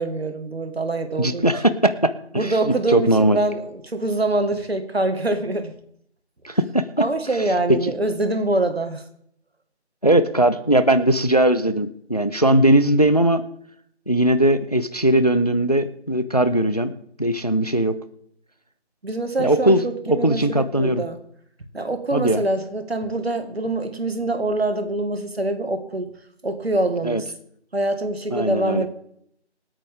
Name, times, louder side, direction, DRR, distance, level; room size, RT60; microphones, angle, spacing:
voice 1, 0.0-1.5 2.3-5.7 7.0-9.0 19.0-21.2 21.7-26.1 26.4-27.3 27.7-28.9, right 2 dB, 60° right, 8 dB, 1.9 m, -24 dB
voice 2, 1.2-3.4 6.4-6.8 7.8-7.9 10.0-13.4 14.1-16.9 17.2-18.0 19.4-21.0 22.1-22.4 27.0-27.2 28.3-28.9, right 1 dB, 35° left, 14 dB, 0.5 m, -19 dB
25.5 x 8.8 x 3.6 m, 0.70 s
figure-of-eight pair, 175°, 34 cm